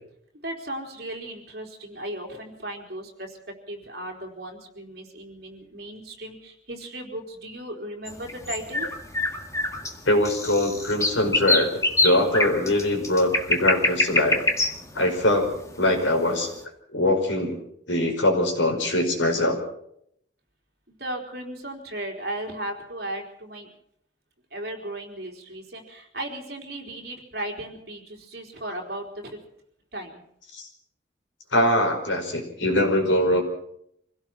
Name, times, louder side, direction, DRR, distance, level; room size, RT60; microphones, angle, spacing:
voice 1, 0.4-8.9 20.9-23.7 24.5-29.4 29.9-30.2, right 1 dB, 55° right, 2 dB, 4.2 m, -36 dB
sound 1, 8.1-16.3, left 2 dB, 15° left, 1.7 m, -25 dB
voice 2, 9.7-14.4 15.0-15.5 15.8-16.5 16.9-17.6 17.9-19.6 30.6-30.7 31.5-33.4, left 1 dB, 75° left, 3 dB, 5.2 m, -22 dB
25.5 x 16.5 x 6.1 m, 0.72 s
head